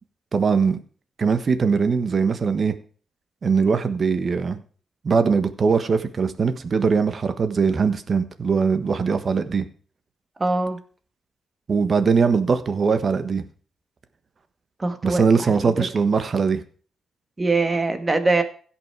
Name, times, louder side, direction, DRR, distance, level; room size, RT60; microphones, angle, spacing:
voice 1, 0.3-0.8 1.2-2.7 3.4-4.6 5.0-9.7 11.7-13.4 15.0-16.6, right 5 dB, 45° right, 10 dB, 1.3 m, -21 dB
voice 2, 10.4-10.8 14.8-15.9 17.4-18.4, right 3 dB, 25° right, 8 dB, 1.7 m, -23 dB
16.0 x 6.0 x 4.7 m, 0.43 s
cardioid pair, 105°, 0 cm